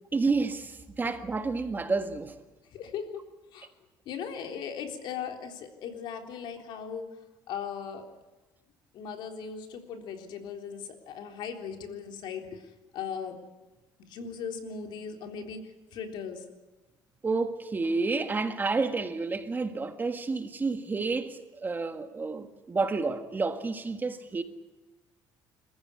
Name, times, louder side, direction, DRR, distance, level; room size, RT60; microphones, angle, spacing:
voice 1, 0.1-2.3 17.2-24.4, right 3 dB, 25° right, 1.8 m, -30 dB
voice 2, 2.7-3.2 3.5-3.7 4.1-7.2 7.5-8.1 8.9-13.4 14.0-16.4, left 7 dB, 70° left, 3.6 m, -38 dB
26.5 x 15.0 x 9.9 m
cardioid pair, 115°, 8 cm